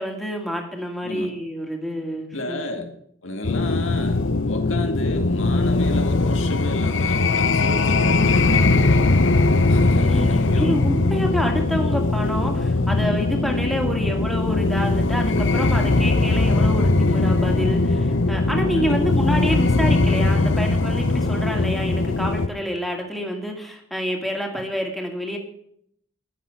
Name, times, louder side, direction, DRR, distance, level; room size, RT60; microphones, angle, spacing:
voice 1, 0.0-2.9 9.8-25.4, equal, ahead, 1 dB, 2.3 m, -28 dB
voice 2, 1.0-1.3 2.3-2.9 3.2-9.2 9.7-10.7 18.8-19.1, left 1 dB, 80° left, 4 dB, 2.0 m, -32 dB
sound 1, 3.4-22.5, left 2 dB, 65° left, 0.8 m, -20 dB
13.5 x 10.5 x 5.9 m, 0.68 s
head